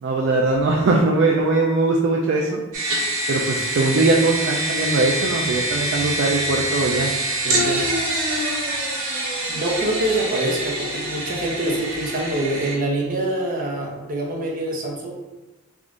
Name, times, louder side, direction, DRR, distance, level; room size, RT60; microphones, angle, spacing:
voice 1, 0.0-2.6 3.3-7.1 7.4-7.8, right 3 dB, 55° right, -1 dB, 0.4 m, -20 dB
sound 1, 2.7-12.7, right 1 dB, 85° right, 1.2 m, -25 dB
voice 2, 9.5-15.1, right 1 dB, 40° right, -2 dB, 0.8 m, -25 dB
3.5 x 2.5 x 3.6 m, 1.2 s
head